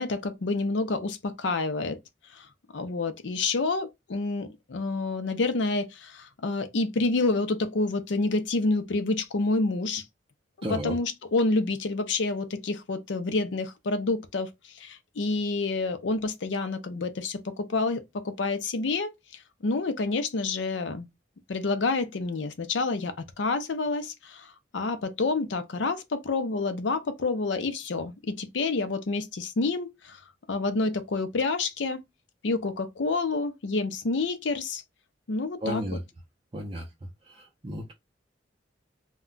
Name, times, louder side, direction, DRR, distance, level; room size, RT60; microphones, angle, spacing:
voice 1, 0.0-2.0 2.3-2.5 2.7-10.0 10.6-21.1 21.5-30.2 30.5-32.0 32.4-34.8 35.3-36.0, left 3 dB, 80° left, 0.5 m, -28 dB
voice 2, 10.6-11.0 35.6-36.0 36.5-36.9 37.3-37.9, right 1 dB, 30° right, 0.5 m, -33 dB
2.2 x 2.2 x 3.7 m
head